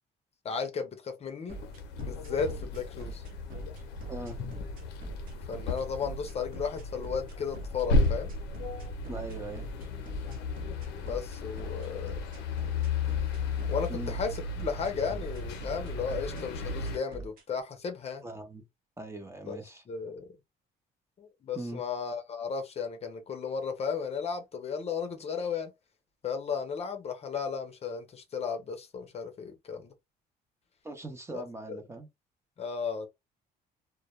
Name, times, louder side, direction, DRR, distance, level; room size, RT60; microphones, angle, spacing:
voice 1, 0.4-1.6 2.0-3.2 5.5-8.9 11.0-12.2 13.7-18.2 19.5-19.6 19.9-20.3 21.2-25.7 26.2-29.9 31.3-31.4 31.7-31.8 32.6-33.1, left 6 dB, 40° left, 0.6 m, -35 dB
sound 1, 1.5-17.0, left 3 dB, 85° left, 0.6 m, -34 dB
sound 2, 1.5-17.4, right 3 dB, 55° right, 0.8 m, -43 dB
voice 2, 9.1-9.7 13.9-14.1 18.2-18.6 19.0-19.8 21.5-21.8 30.8-32.1, right 2 dB, 15° right, 0.7 m, -40 dB
2.2 x 2.1 x 2.9 m
cardioid pair, 110°, 17 cm